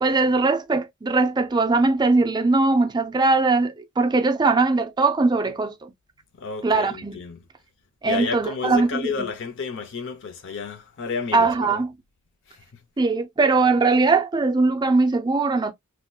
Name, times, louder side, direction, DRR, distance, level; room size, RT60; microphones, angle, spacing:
voice 1, 0.0-5.9 6.6-7.2 8.0-9.3 11.3-11.9 13.0-15.7, right 3 dB, 20° right, 0.4 m, -20 dB
voice 2, 6.4-7.4 8.0-11.8 12.5-12.6, left 5 dB, 60° left, 0.6 m, -31 dB
3.0 x 2.8 x 2.2 m
head